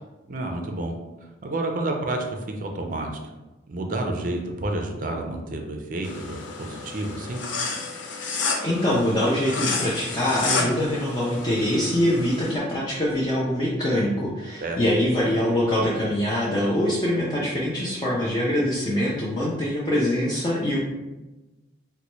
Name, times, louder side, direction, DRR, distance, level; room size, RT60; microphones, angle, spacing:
voice 1, 0.3-0.9 1.4-3.1 3.7-7.4 14.6-14.8, right 2 dB, 45° right, 3 dB, 0.4 m, -29 dB
sound 1, 6.0-12.5, left 4 dB, 75° left, 0.6 m, -31 dB
voice 2, 8.6-20.8, left 1 dB, 20° left, -6 dB, 0.4 m, -24 dB
4.1 x 2.2 x 3.0 m, 1.1 s
head